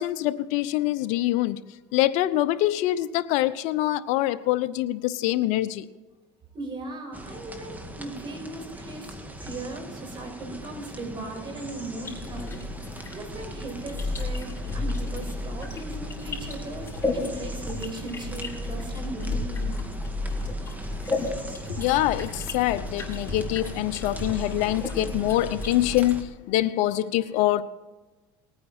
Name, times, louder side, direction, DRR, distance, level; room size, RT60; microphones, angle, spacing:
voice 1, 0.0-1.6 1.9-5.8 21.7-27.6, left 15 dB, 70° left, 0.8 m, -25 dB
voice 2, 6.5-19.8, right 2 dB, 40° right, 5.5 m, -38 dB
sound 1, 7.1-26.2, right 1 dB, 10° right, 2.0 m, -41 dB
sound 2, 12.0-26.2, left 2 dB, 20° left, 4.9 m, -33 dB
20.0 x 9.4 x 4.4 m
supercardioid pair, 90°, 13 cm